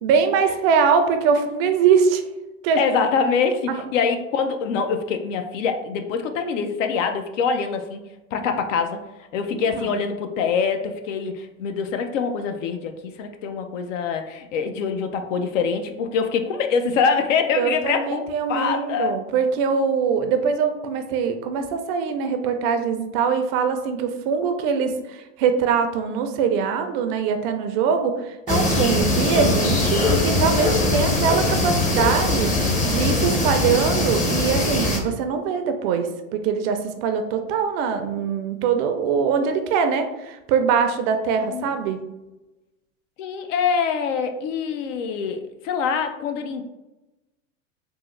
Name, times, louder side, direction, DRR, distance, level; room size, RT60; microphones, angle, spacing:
voice 1, 0.0-2.2 2.6-2.8 9.5-10.0 17.5-42.0, right 6 dB, 50° right, 7 dB, 0.5 m, -22 dB
voice 2, 2.8-8.0 8.3-9.0 9.3-18.2 18.5-19.2 41.5-41.7 43.2-46.6, left 6 dB, 75° left, 6 dB, 0.6 m, -24 dB
sound 1, 28.5-35.0, left 2 dB, 20° left, 0.6 m, -21 dB
3.6 x 2.0 x 3.1 m, 1.0 s
hypercardioid pair, 110°, 38 cm